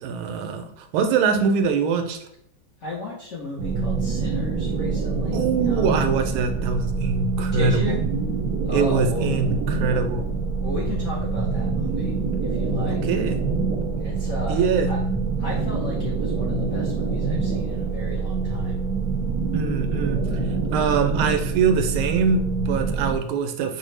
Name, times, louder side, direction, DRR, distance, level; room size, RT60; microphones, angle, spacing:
voice 1, 0.0-2.2 5.3-8.0 8.7-10.3 12.8-13.4 14.5-14.9 19.5-20.4 20.7-23.8, right 6 dB, 90° right, 6 dB, 1.5 m, -23 dB
voice 2, 2.8-6.0 7.5-8.0 8.6-9.5 10.6-13.1 14.0-15.0 15.4-18.8, left 2 dB, 90° left, -3 dB, 0.6 m, -34 dB
sound 1, 3.6-23.2, right 4 dB, 70° right, 1.0 m, -25 dB
5.4 x 2.1 x 3.2 m, 0.73 s
omnidirectional pair, 2.3 m